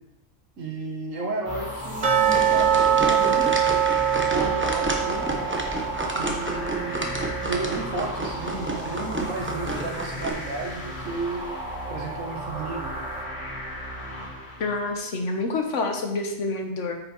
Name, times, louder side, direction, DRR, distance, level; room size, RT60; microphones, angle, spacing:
voice 1, 0.6-3.4 4.1-5.2 6.1-7.2 7.4-11.4 11.9-12.9, right 3 dB, 70° right, 1 dB, 1.8 m, -33 dB
sound 1, 1.4-14.9, equal, 35° left, 4.0 m, -35 dB
sound 2, 2.0-8.9 9.2-9.3 9.8-9.9 10.4-10.5, right 9 dB, 35° right, 1.0 m, -24 dB
sound 3, 2.2-10.3, right 1 dB, 10° right, 1.0 m, -31 dB
voice 2, 14.6-17.0, left 3 dB, 65° left, 4 dB, 1.4 m, -27 dB
9.4 x 6.4 x 4.5 m, 0.93 s
omnidirectional pair, 1.4 m